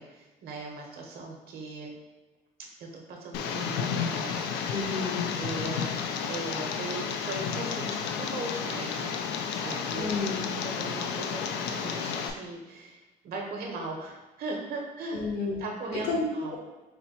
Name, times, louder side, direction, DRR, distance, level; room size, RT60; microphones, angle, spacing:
voice 1, 0.0-1.9 2.8-4.7 5.2-5.9 6.2-9.1 9.5-10.1 10.6-15.2 15.6-16.6, right 3 dB, 65° right, 0 dB, 1.0 m, -38 dB
Tick, 3.3-12.3, left 6 dB, 85° left, 0.4 m, -32 dB
voice 2, 4.7-5.3 9.9-10.4 15.1-15.6 15.9-16.2, left 4 dB, 70° left, -2 dB, 1.2 m, -31 dB
4.3 x 2.2 x 4.1 m, 1.2 s
cardioid pair, 110°, 17 cm